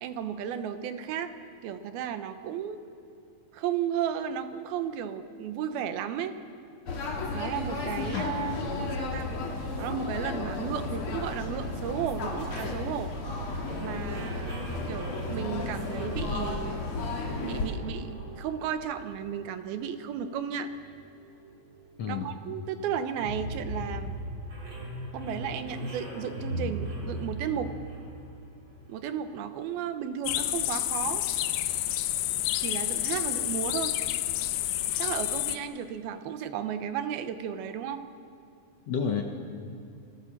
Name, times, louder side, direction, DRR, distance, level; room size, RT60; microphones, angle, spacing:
voice 1, 0.0-1.3 1.6-2.8 3.5-6.3 7.3-9.3 9.8-13.1 13.8-16.8 17.4-18.1 18.4-20.7 22.1-24.1 25.1-27.7 28.9-31.2 32.6-33.9 35.0-38.0, right 8 dB, 85° right, 9 dB, 2.9 m, -34 dB
winter night street ambience, 6.9-17.7, left 3 dB, 40° left, 2.7 m, -34 dB
sound 1, 13.6-29.1, equal, 35° right, 4.1 m, -39 dB
sound 2, 30.3-35.6, left 13 dB, 85° left, 2.6 m, -29 dB
voice 2, 38.9-39.2, left 6 dB, 60° left, 3 dB, 1.9 m, -30 dB
28.0 x 17.0 x 7.3 m, 2.7 s
omnidirectional pair, 4.2 m